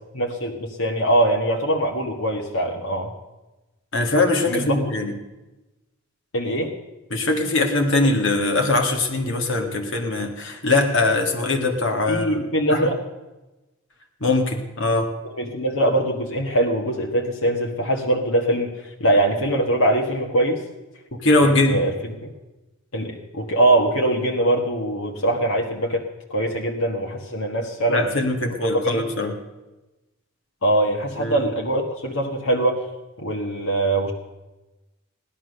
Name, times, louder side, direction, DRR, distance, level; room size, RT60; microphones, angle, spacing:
voice 1, 0.1-3.1 4.5-4.8 6.3-6.7 12.1-13.0 15.4-18.7 19.0-20.6 21.4-21.9 22.2-22.3 22.9-26.0 26.3-28.0 28.8-29.0 30.6-32.8 33.2-34.1, right 1 dB, 75° left, 0 dB, 1.6 m, -22 dB
voice 2, 3.9-5.1 7.1-12.4 12.7-12.9 14.2-15.1 21.2-21.8 27.9-29.4 31.2-31.5, left 2 dB, 55° left, 4 dB, 2.0 m, -21 dB
16.5 x 11.5 x 6.7 m, 1.1 s
head